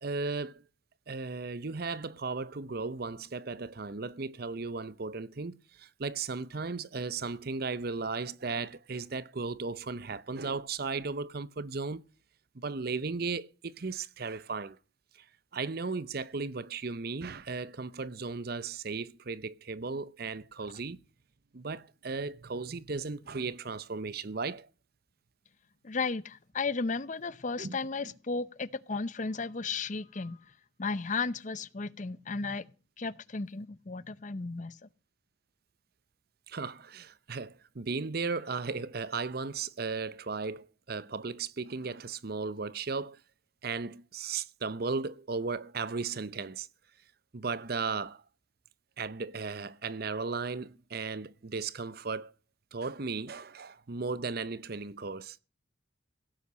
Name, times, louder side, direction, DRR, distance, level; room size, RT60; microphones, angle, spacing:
voice 1, 0.0-0.6 1.1-12.0 12.5-14.8 15.1-15.2 15.5-21.0 21.5-24.7 27.6-27.8 36.5-43.2 43.6-46.7 47.3-48.2 49.0-52.3 52.7-55.4, right 4 dB, 55° right, 0.7 m, -36 dB
voice 2, 25.8-30.4 30.8-32.7 33.0-34.8, left 4 dB, 40° left, 0.7 m, -34 dB
17.0 x 8.4 x 6.3 m
head